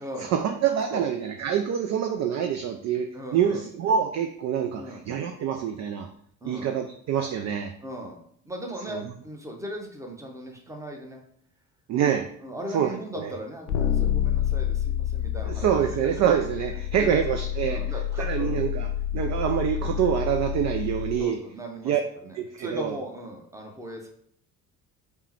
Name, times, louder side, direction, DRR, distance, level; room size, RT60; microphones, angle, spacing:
voice 1, 0.2-6.1 6.4-7.7 8.9-9.0 11.9-12.3 12.7-12.9 13.2-13.3 15.5-17.8 18.2-18.9 19.1-21.4 21.8-22.0 22.4-22.9, right 8 dB, 40° right, 6 dB, 0.4 m, -26 dB
voice 2, 3.1-3.6 4.7-5.0 6.4-6.7 7.8-11.2 12.4-16.1 17.0-17.2 17.6-18.6 21.2-21.9 22.2-24.1, equal, 5° right, 1 dB, 0.9 m, -38 dB
sound 1, 13.7-21.2, left 10 dB, 50° left, 0.5 m, -28 dB
3.6 x 2.2 x 4.3 m, 0.67 s
figure-of-eight pair, 50°, 47 cm